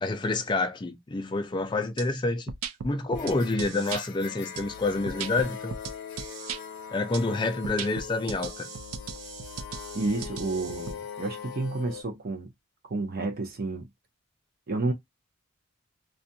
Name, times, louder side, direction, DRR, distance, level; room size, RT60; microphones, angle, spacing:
voice 1, 0.0-2.5 2.8-5.8 6.9-8.7, left 3 dB, 20° left, 0.3 m, -28 dB
sound 1, 2.0-2.1 2.5-4.0 4.6-6.6 7.1-7.2 7.6-10.9, right 6 dB, 85° right, 0.4 m, -38 dB
sound 2, 3.1-12.0, left 7 dB, 85° left, 0.6 m, -41 dB
voice 2, 9.9-12.5 12.8-13.9 14.7-14.9, right 2 dB, 45° right, 0.6 m, -30 dB
2.4 x 2.2 x 2.6 m
head